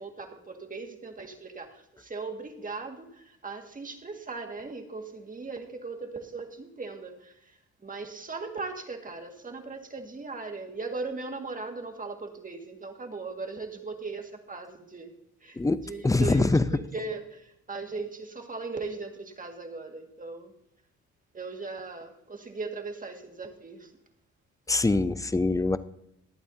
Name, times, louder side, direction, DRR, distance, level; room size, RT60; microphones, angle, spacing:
voice 1, 0.0-7.3 7.8-15.1 15.4-15.6 15.8-20.5 21.3-23.9, right 3 dB, 25° right, 4 dB, 1.9 m, -38 dB
voice 2, 15.6-16.7 24.7-25.8, left 3 dB, 10° left, 15 dB, 0.5 m, -24 dB
23.0 x 8.8 x 2.7 m, 0.77 s
cardioid pair, 90°, 30 cm